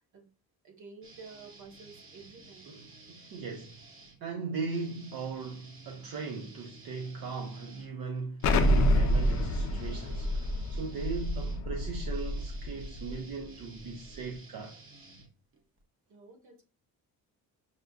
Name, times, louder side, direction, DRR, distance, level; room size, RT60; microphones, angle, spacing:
voice 1, 0.6-2.7 16.1-16.6, right 4 dB, 55° right, 1.4 m, -51 dB
sound 1, 1.0-4.2 4.7-15.8, right 3 dB, 35° right, 0.8 m, -54 dB
voice 2, 2.7-3.8 4.2-14.8, right 4 dB, 75° right, 0.7 m, -38 dB
Explosion, 8.4-13.1, left 1 dB, 55° left, 0.5 m, -28 dB
6.5 x 2.5 x 2.3 m
cardioid pair, 160°, 36 cm